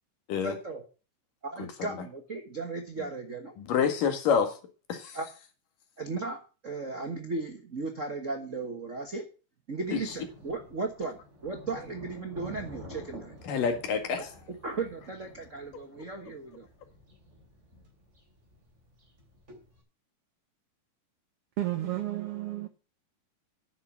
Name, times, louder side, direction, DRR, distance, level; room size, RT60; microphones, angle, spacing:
voice 1, 0.4-0.8 1.4-3.5 5.1-5.3 6.0-9.3 9.7-13.5 14.5-16.7, right 3 dB, 65° right, 0.7 m, -36 dB
voice 2, 3.6-4.6 4.9-5.2 9.9-10.1 13.4-14.3, left 6 dB, 85° left, 3.5 m, -27 dB
Thunder, 9.8-19.8, equal, 20° right, 3.4 m, -50 dB
voice 3, 21.6-22.7, right 14 dB, 85° right, 1.2 m, -32 dB
9.9 x 7.1 x 7.1 m
omnidirectional pair, 3.7 m